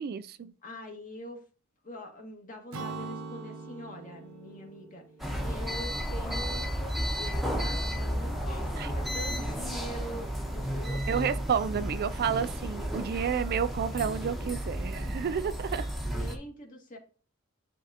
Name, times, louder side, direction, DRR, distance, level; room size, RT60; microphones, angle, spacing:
voice 1, 0.0-0.5 8.8-8.9 11.1-15.9, right 7 dB, 45° right, 0.3 m, -30 dB
voice 2, 0.6-1.4 1.8-5.0 5.4-11.3 16.1-17.0, left 1 dB, 40° left, 1.8 m, -44 dB
Acoustic guitar / Strum, 2.7-6.3, right 4 dB, 75° right, 0.9 m, -43 dB
sound 1, 5.2-16.4, equal, ahead, 1.0 m, -33 dB
10.0 x 3.7 x 2.8 m
head